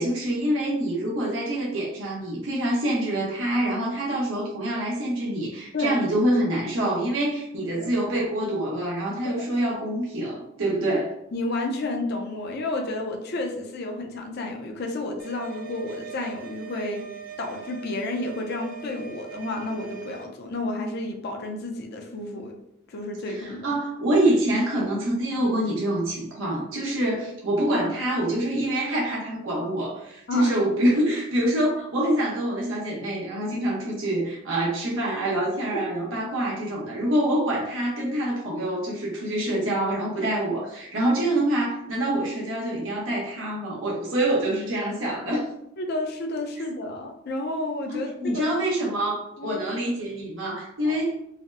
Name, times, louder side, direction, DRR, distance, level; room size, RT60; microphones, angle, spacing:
voice 1, 0.0-11.1 23.3-45.5 47.9-51.3, right 1 dB, 85° right, -3 dB, 0.8 m, -26 dB
voice 2, 7.6-7.9 9.2-9.4 11.3-17.0 17.4-22.5 22.9-23.7 30.3-30.9 45.8-48.4 49.4-49.6 50.8-51.0, left 2 dB, 55° left, 2 dB, 0.5 m, -31 dB
sound 1, 15.2-20.2, right 8 dB, 45° right, 0.6 m, -41 dB
4.1 x 2.0 x 2.5 m, 0.80 s
head